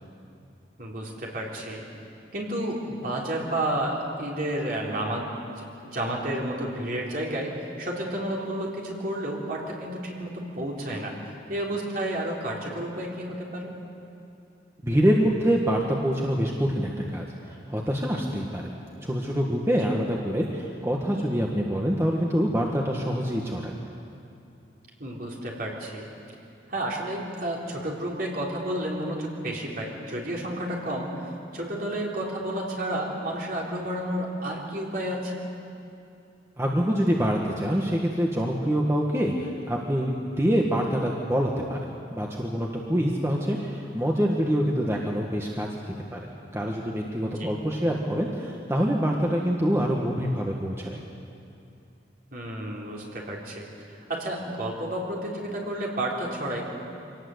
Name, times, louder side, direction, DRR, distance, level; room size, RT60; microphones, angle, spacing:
voice 1, 0.8-1.8 2.3-11.1 11.5-13.7 25.0-26.1 26.7-35.4 47.4-47.5 52.3-53.7 54.1-56.6, right 1 dB, 50° right, -3 dB, 4.0 m, -31 dB
voice 2, 14.8-18.7 19.0-23.7 36.6-41.8 42.1-51.0, equal, 15° right, -1 dB, 1.5 m, -25 dB
24.5 x 18.5 x 8.0 m, 2.6 s
head